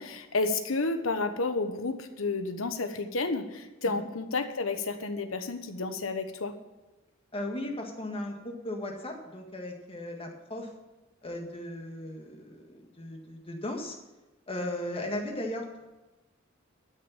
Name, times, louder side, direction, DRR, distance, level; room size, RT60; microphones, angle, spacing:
voice 1, 0.0-6.5, left 3 dB, 80° left, 8 dB, 1.2 m, -31 dB
voice 2, 7.3-10.7 11.2-14.0 14.5-15.9, left 1 dB, 30° left, 2 dB, 1.7 m, -37 dB
12.5 x 6.6 x 7.3 m, 1.1 s
head